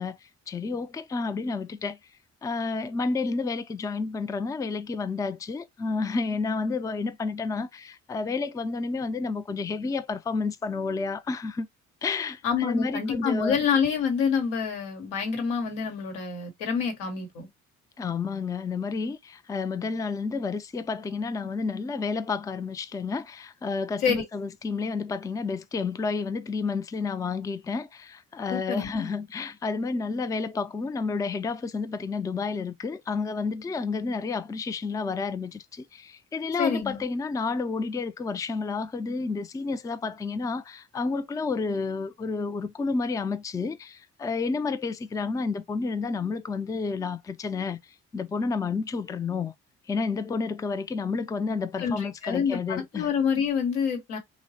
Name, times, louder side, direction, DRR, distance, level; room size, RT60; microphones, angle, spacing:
voice 1, 0.0-2.0 2.4-11.7 12.0-13.6 18.0-47.8 48.1-49.5 49.9-53.1, left 4 dB, 10° left, 0.3 m, -30 dB
voice 2, 12.4-17.5 24.0-24.2 28.5-28.9 36.6-37.0 51.8-54.2, left 6 dB, 85° left, 1.0 m, -27 dB
3.0 x 2.0 x 2.6 m
hypercardioid pair, 45°, 37 cm